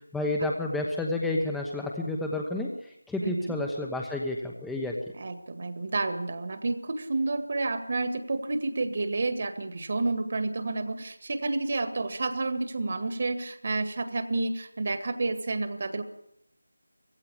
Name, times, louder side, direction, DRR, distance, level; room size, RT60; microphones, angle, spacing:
voice 1, 0.1-5.0, left 2 dB, 5° left, 0 dB, 1.1 m, -30 dB
voice 2, 3.2-3.5 5.1-16.0, right 3 dB, 45° right, 9 dB, 1.9 m, -30 dB
18.0 x 16.0 x 10.0 m, 0.78 s
figure-of-eight pair, 165°, 0 cm